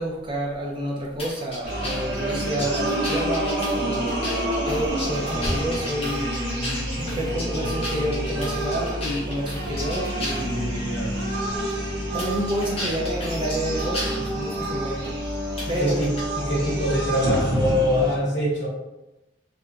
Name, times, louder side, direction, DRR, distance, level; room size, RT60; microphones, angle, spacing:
voice 1, 0.0-4.3 4.6-6.6 7.0-10.9 12.1-15.2 15.7-16.1, right 1 dB, 25° right, -2 dB, 0.5 m, -29 dB
sound 1, 1.2-10.5 11.2-11.3 12.2-14.2 15.6-16.2, left 1 dB, 35° left, 0.7 m, -34 dB
sound 2, 1.6-18.2, right 1 dB, 65° right, 0.6 m, -28 dB
voice 2, 2.3-2.7 6.7-7.2 10.8-11.1 15.8-18.7, equal, 75° left, -3 dB, 0.8 m, -25 dB
2.7 x 2.2 x 2.4 m, 0.98 s
head